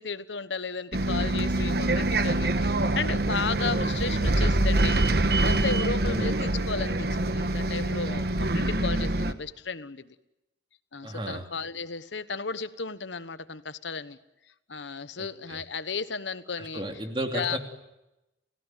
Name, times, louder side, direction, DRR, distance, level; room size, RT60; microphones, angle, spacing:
voice 1, 0.0-5.0 5.4-10.1 10.9-14.2 14.7-16.8 17.3-17.6, left 5 dB, 80° left, 14 dB, 1.2 m, -34 dB
Bus, 0.9-9.3, right 2 dB, 55° right, 1.2 m, -25 dB
voice 2, 6.1-6.5 11.0-11.4 15.2-15.6 16.6-17.6, right 1 dB, 25° right, 4 dB, 3.0 m, -34 dB
29.5 x 17.0 x 9.2 m, 0.95 s
head